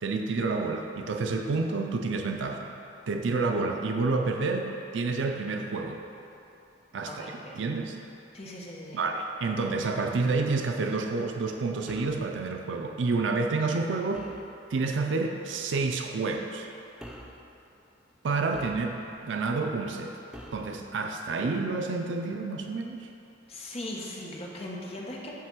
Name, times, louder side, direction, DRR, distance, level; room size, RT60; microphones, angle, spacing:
voice 1, 0.0-2.7 3.1-6.0 6.9-8.0 8.9-14.3 14.7-16.7 18.2-20.2 20.5-23.1, right 3 dB, 90° right, 3 dB, 0.5 m, -29 dB
voice 2, 7.0-7.6 8.3-9.0 23.5-25.3, left 1 dB, 35° left, -3 dB, 1.0 m, -39 dB
sound 1, 11.9-12.3 14.1-14.5 15.7-16.0 17.0-17.4 18.5-19.2 20.3-20.7, equal, 5° right, 0.5 m, -46 dB
9.5 x 3.2 x 6.1 m, 2.8 s
head